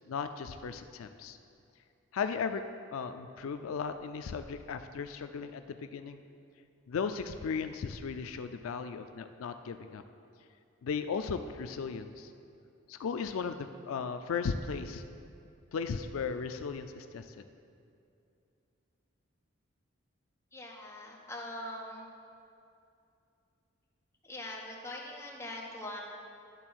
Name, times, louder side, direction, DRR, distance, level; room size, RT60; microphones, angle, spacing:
voice 1, 0.1-1.4 2.1-2.6 2.9-6.2 6.9-10.0 10.8-12.3 12.9-15.0 15.7-17.4, left 5 dB, 85° left, 9 dB, 0.4 m, -36 dB
voice 2, 20.5-22.1 24.2-26.0, left 1 dB, 15° left, -2 dB, 0.9 m, -42 dB
10.5 x 3.7 x 6.2 m, 2.6 s
head